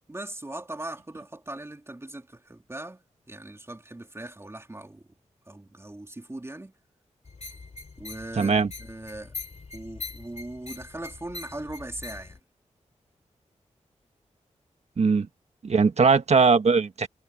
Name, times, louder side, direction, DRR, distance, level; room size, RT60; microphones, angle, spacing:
voice 1, 0.1-5.1 5.5-6.7 8.0-9.3 9.7-12.4, right 1 dB, 20° right, 3.3 m, -39 dB
sound 1, 7.2-12.4, left 4 dB, 60° left, 3.3 m, -42 dB
voice 2, 8.4-8.7 15.0-15.3 15.6-17.1, right 5 dB, 60° right, 1.5 m, -20 dB
cardioid pair, 55°, 13 cm